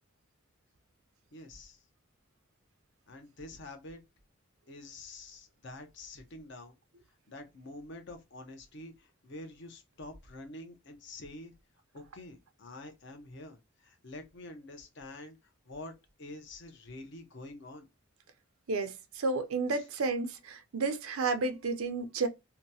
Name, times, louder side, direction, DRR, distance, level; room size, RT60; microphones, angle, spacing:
voice 1, 1.3-1.8 3.1-4.0 4.7-6.7 7.3-11.5 11.9-15.4 15.7-17.9 19.7-19.8, left 2 dB, 55° left, 0.7 m, -47 dB
voice 2, 18.7-22.3, right 3 dB, 90° right, 0.6 m, -31 dB
2.9 x 2.2 x 2.7 m
head